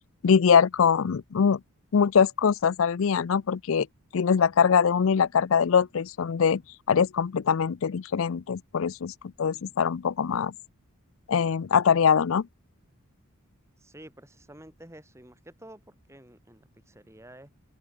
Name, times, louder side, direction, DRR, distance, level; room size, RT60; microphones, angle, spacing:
voice 1, 0.2-1.6 1.9-3.9 4.1-6.6 6.9-9.1 9.4-10.5 11.3-12.5, left 6 dB, 60° left, 0.4 m, -22 dB
voice 2, 13.8-17.5, right 1 dB, 10° right, 6.8 m, -50 dB
open air
head